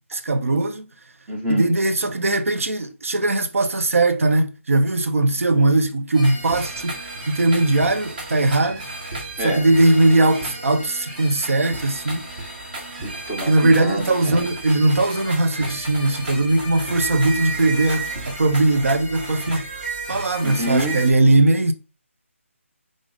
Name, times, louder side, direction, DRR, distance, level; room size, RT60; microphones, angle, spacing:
voice 1, 0.1-0.8 1.5-7.0 7.3-8.8 9.4-12.3 13.5-19.7 20.1-21.7, right 2 dB, 75° right, 0.7 m, -19 dB
voice 2, 1.3-1.7 9.4-9.7 13.0-14.5 20.4-21.0, right 1 dB, 10° right, 0.5 m, -26 dB
sound 1, 6.1-21.1, right 2 dB, 45° right, 1.7 m, -33 dB
3.8 x 3.4 x 3.7 m
hypercardioid pair, 170°, 7 cm